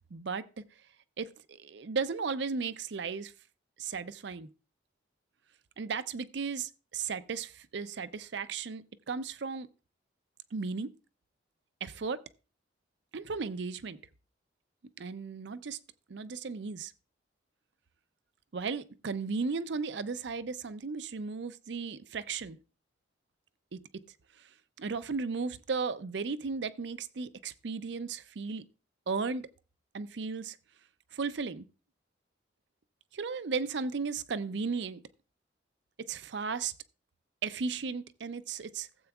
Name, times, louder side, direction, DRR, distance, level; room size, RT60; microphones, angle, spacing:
voice 1, 0.1-0.6 1.2-3.3 3.8-4.5 5.8-9.7 10.5-10.9 11.8-12.2 13.1-14.0 15.0-15.8 16.1-16.9 18.5-22.6 23.7-23.8 24.8-28.6 29.1-29.5 29.9-30.6 31.1-31.7 33.1-35.0 36.1-36.7 37.4-38.9, right 5 dB, 65° right, 0.5 m, -35 dB
16.5 x 7.9 x 2.3 m
head